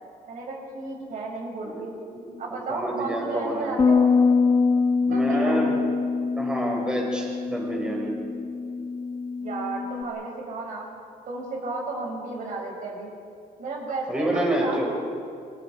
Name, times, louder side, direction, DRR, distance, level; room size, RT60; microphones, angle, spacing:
voice 1, 0.3-1.9 2.4-4.1 5.0-5.7 9.4-10.9 11.3-13.1 13.6-15.0, right 3 dB, 55° right, -1 dB, 5.7 m, -33 dB
voice 2, 1.6-3.7 5.1-5.8 6.4-8.1 14.1-14.9, right 1 dB, 5° right, -2 dB, 4.8 m, -28 dB
Bass guitar, 3.8-10.0, left 4 dB, 30° left, 1.4 m, -24 dB
30.0 x 25.5 x 4.5 m, 2.4 s
cardioid pair, 160°, 16 cm